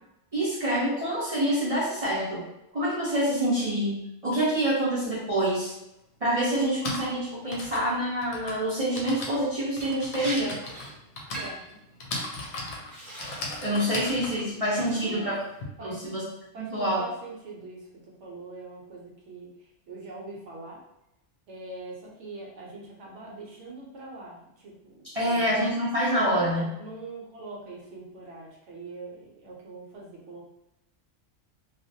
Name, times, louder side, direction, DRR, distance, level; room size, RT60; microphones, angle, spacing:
voice 1, 0.3-2.4 2.7-5.7 6.2-10.6 13.6-15.3 15.8-16.2 16.6-17.0 25.1-26.6, right 1 dB, 45° right, -8 dB, 0.5 m, -26 dB
Typing, 5.5-5.6 6.5-15.7, left 2 dB, 65° left, 0.8 m, -38 dB
Liquid, 9.8-9.9 10.2-10.4 10.7-10.9 11.3-11.7 12.3-12.5 12.9-13.8 14.2-14.6, right 1 dB, ahead, 0.7 m, -39 dB
voice 2, 11.4-11.8 14.8-15.3 15.8-16.0 16.5-20.8 21.5-25.6 26.1-26.4 26.8-30.4, right 2 dB, 70° right, -3 dB, 0.9 m, -42 dB
2.4 x 2.0 x 2.6 m, 0.87 s
omnidirectional pair, 1.3 m